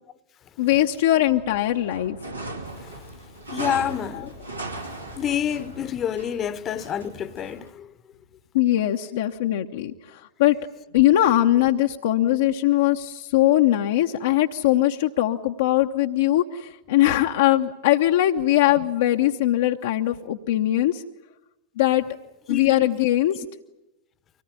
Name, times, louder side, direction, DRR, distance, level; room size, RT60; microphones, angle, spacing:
voice 1, 0.6-2.2 4.1-4.3 8.5-10.6 10.9-21.0 21.8-22.0 22.5-23.4, left 14 dB, 55° left, 0.9 m, -21 dB
sound 1, 1.3-7.7, right 2 dB, 85° right, 2.8 m, -38 dB
voice 2, 3.5-4.4 5.1-7.9 22.5-22.8, left 9 dB, 30° left, 1.0 m, -28 dB
24.5 x 18.5 x 9.9 m
figure-of-eight pair, 90°, 0 cm